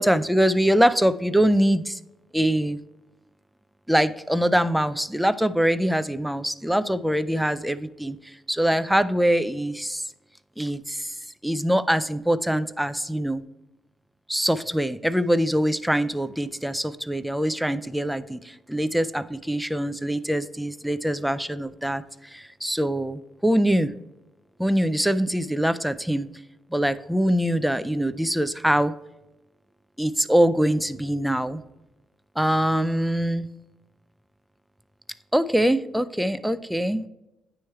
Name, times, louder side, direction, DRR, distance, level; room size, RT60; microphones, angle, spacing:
voice 1, 0.0-2.0 2.3-2.8 3.9-10.0 10.6-11.2 11.4-13.4 14.3-23.9 24.6-26.3 26.7-28.9 30.0-31.6 32.4-33.5 35.3-37.1, equal, 5° right, 14 dB, 0.4 m, -23 dB
9.5 x 3.2 x 4.5 m, 0.97 s
cardioid pair, 90°, 0 cm